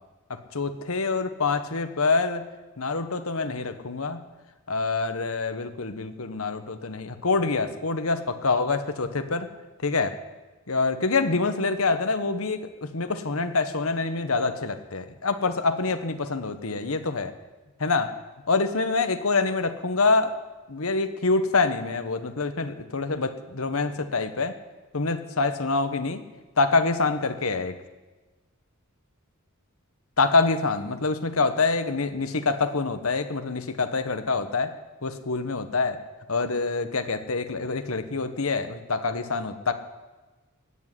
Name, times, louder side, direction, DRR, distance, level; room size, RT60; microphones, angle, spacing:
voice 1, 0.3-2.4 2.8-4.2 4.7-9.5 9.8-10.1 10.7-17.3 17.8-18.1 18.5-20.4 20.7-24.6 24.9-26.2 26.6-27.7 30.2-34.7 35.0-36.0 36.3-39.7, left 3 dB, 80° left, 9 dB, 1.3 m, -26 dB
16.5 x 7.6 x 9.8 m, 1.2 s
head